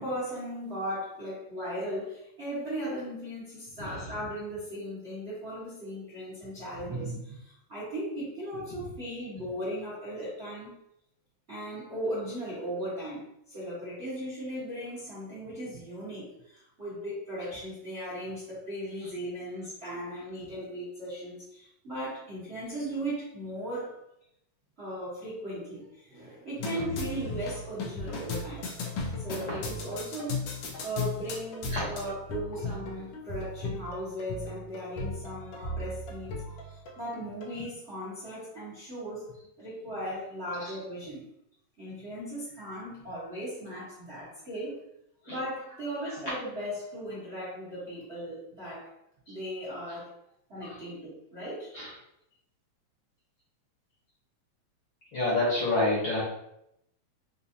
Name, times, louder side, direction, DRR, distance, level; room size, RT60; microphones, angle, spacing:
voice 1, 0.0-10.8 11.5-24.0 24.8-28.7 29.2-41.3 41.8-44.8 45.3-48.9 49.3-50.1 50.5-51.7, equal, 50° right, -10 dB, 0.7 m, -37 dB
sound 1, 26.6-37.5, left 3 dB, 90° left, 1.3 m, -36 dB
voice 2, 55.1-56.2, left 2 dB, 55° left, -7 dB, 1.4 m, -28 dB
4.7 x 2.6 x 2.7 m, 0.79 s
omnidirectional pair, 3.4 m